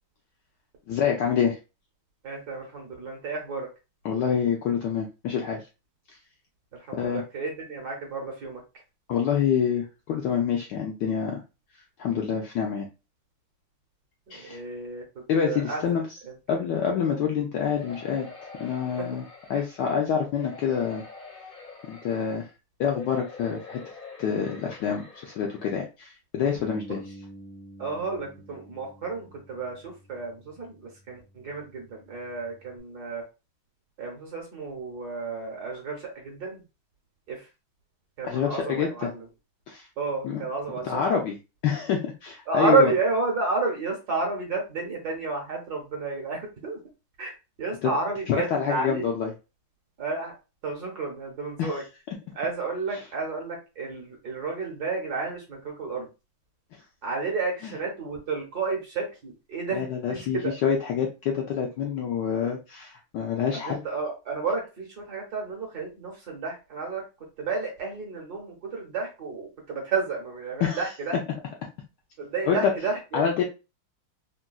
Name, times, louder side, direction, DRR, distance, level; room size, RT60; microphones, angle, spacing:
voice 1, 0.9-1.6 4.0-5.6 6.9-7.2 9.1-11.4 12.0-12.9 14.3-14.6 15.3-16.1 16.5-18.3 18.6-19.2 19.5-21.0 21.9-22.5 22.8-23.8 24.2-27.0 38.2-39.1 39.7-39.9 40.2-40.4 40.8-41.4 41.6-42.9 47.8-47.9 48.3-49.3 51.6-51.8 52.9-53.0 57.6-57.7 59.7-63.8 70.6-70.9 72.4-72.7 73.1-73.4, left 7 dB, 75° left, 0 dB, 1.0 m, -27 dB
voice 2, 2.2-3.7 6.9-8.6 14.3-15.0 15.5-15.8 19.5-19.6 27.8-33.2 34.0-36.6 37.3-37.4 38.2-39.2 40.0-41.2 42.5-46.8 47.2-47.3 47.6-49.0 50.0-50.3 50.6-51.8 52.3-56.1 57.0-59.9 60.4-60.5 63.5-67.0 67.4-71.2 72.2-73.3, right 4 dB, 60° right, 0 dB, 1.2 m, -31 dB
sound 1, 17.7-19.9 20.3-22.5 22.9-25.8 26.3-26.4 26.7-26.8, left 4 dB, 45° left, 0.7 m, -44 dB
Bass guitar, 26.5-32.8, right 1 dB, 85° right, 0.7 m, -49 dB
3.8 x 2.2 x 2.3 m, 0.29 s
omnidirectional pair, 2.3 m